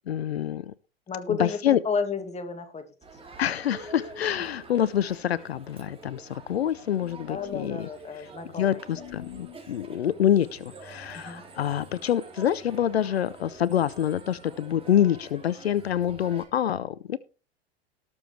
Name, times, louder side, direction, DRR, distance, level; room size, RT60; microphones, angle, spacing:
voice 1, 0.1-0.7 1.3-1.8 3.4-7.9 8.6-17.2, left 10 dB, 80° left, 20 dB, 0.5 m, -26 dB
voice 2, 1.1-2.9 7.1-9.1 11.1-11.4, left 5 dB, 20° left, 7 dB, 2.2 m, -32 dB
Crowd, 3.0-16.4, right 3 dB, 20° right, 3.4 m, -47 dB
sound 1, 7.0-7.7 8.8-9.6, left 18 dB, 55° left, 1.1 m, -46 dB
19.0 x 7.0 x 3.2 m, 0.34 s
figure-of-eight pair, 80°, 31 cm